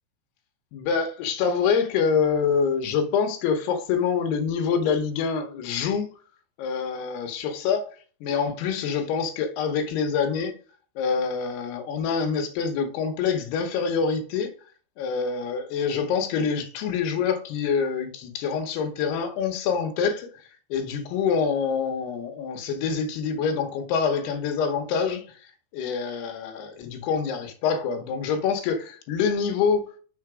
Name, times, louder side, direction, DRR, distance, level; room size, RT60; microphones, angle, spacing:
voice 1, 0.7-6.1 6.6-7.8 8.2-10.5 11.0-14.5 15.0-20.3 20.7-25.4 25.7-29.8, left 6 dB, 70° left, 2.6 m, -26 dB
6.7 x 5.7 x 4.8 m
omnidirectional pair, 5.5 m